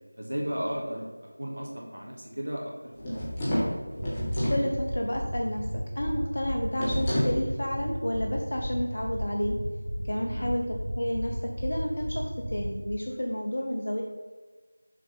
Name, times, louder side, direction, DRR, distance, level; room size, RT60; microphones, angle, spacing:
voice 1, 0.2-3.4 10.2-10.6, equal, 65° right, -1 dB, 1.7 m, -35 dB
sound 1, 3.0-4.7 6.8-7.4, equal, 15° left, 1.2 m, -28 dB
sound 2, 4.0-12.9, equal, 85° right, 2.1 m, -35 dB
voice 2, 4.4-5.6 6.0-9.6 10.0-14.0, left 1 dB, 45° left, 1 dB, 0.8 m, -31 dB
6.6 x 5.1 x 4.3 m, 1.4 s
figure-of-eight pair, 170°, 0 cm